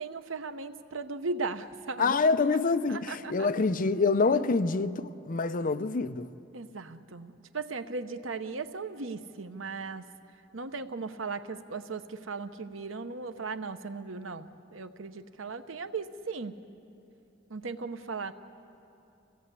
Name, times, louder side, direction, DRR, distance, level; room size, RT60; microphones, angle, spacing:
voice 1, 0.0-2.2 2.9-3.5 4.3-4.4 6.5-10.1 10.5-16.6 17.5-18.3, right 4 dB, 90° right, 1.0 m, -37 dB
voice 2, 2.0-6.4, left 4 dB, 45° left, 0.6 m, -26 dB
27.0 x 17.0 x 8.3 m
head